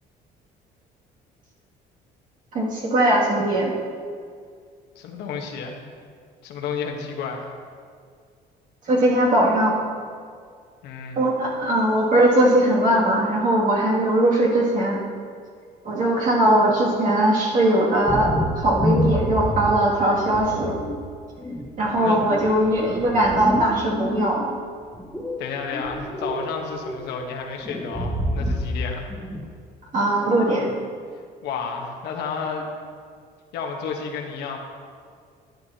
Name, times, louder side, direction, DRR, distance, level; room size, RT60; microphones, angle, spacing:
voice 1, 2.5-3.7 8.9-9.8 11.2-15.0 15.8-20.7 21.8-24.4 29.9-30.7, right 1 dB, 50° right, -4 dB, 2.4 m, -20 dB
voice 2, 4.9-5.8 6.4-7.5 10.8-11.2 22.0-22.6 25.4-29.1 31.4-32.7 33.5-34.6, left 5 dB, 80° left, 1 dB, 1.2 m, -31 dB
sound 1, 18.0-19.9 20.3-21.0 21.4-24.5 24.9-26.5 26.7-27.1 27.6-28.8 29.1-29.5, left 1 dB, 5° left, 1.1 m, -27 dB
11.5 x 9.0 x 2.8 m, 2.1 s
cardioid pair, 110°, 17 cm